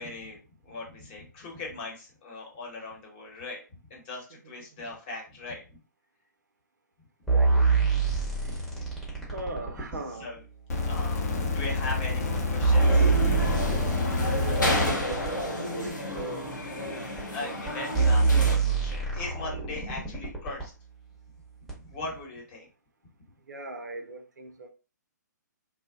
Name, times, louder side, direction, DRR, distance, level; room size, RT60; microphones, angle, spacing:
voice 1, 0.0-5.8 7.7-9.3 9.7-9.9 10.2-10.4 10.9-13.1 15.0-15.1 16.8-16.9 17.3-20.7 21.7-22.7, left 2 dB, 30° left, 0.9 m, -40 dB
sound 1, 7.3-10.0 11.0-11.1 11.9-12.0 12.4-15.3 16.2-16.3 17.2-17.3 17.7-17.8 17.9-20.7 21.7-21.8, right 4 dB, ahead, 0.7 m, -25 dB
voice 2, 7.3-7.7 8.1-8.5 9.3-10.3 13.8-16.5 16.7-17.2 23.5-24.7, right 2 dB, 70° right, 0.5 m, -40 dB
sound 2, 10.7-14.9 15.9-16.0, left 3 dB, 55° left, 0.6 m, -28 dB
sound 3, 12.8-18.6, left 1 dB, 85° left, 0.7 m, -31 dB
2.6 x 2.0 x 2.4 m
figure-of-eight pair, 130°, 10 cm